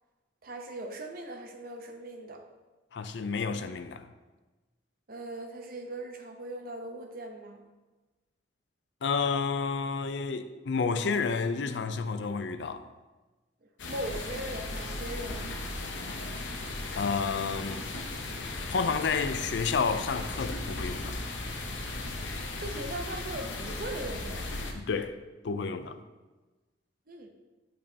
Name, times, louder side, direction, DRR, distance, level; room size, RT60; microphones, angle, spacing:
voice 1, 0.4-2.4 5.1-7.6 13.6-15.6 22.6-24.5 27.1-27.3, right 1 dB, 50° right, 0.7 m, -39 dB
voice 2, 2.9-4.1 9.0-12.8 17.0-17.8 18.7-21.1 24.7-25.1 25.4-26.0, left 5 dB, 70° left, 0.4 m, -30 dB
sound 1, 13.8-24.7, left 2 dB, 85° left, 0.8 m, -36 dB
8.8 x 5.4 x 2.8 m
head